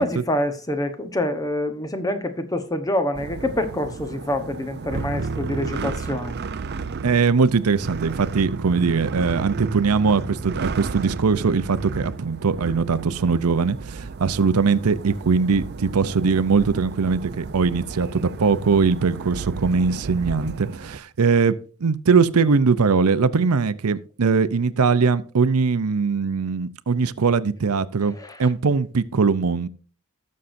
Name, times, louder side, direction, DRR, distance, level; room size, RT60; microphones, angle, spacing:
voice 1, 0.0-6.3 28.2-28.4, left 1 dB, 15° left, 1.0 m, -26 dB
sound 1, 3.1-21.0, right 4 dB, 50° right, 0.5 m, -33 dB
voice 2, 7.0-29.7, right 5 dB, 90° right, 0.6 m, -21 dB
18.5 x 6.5 x 2.6 m
head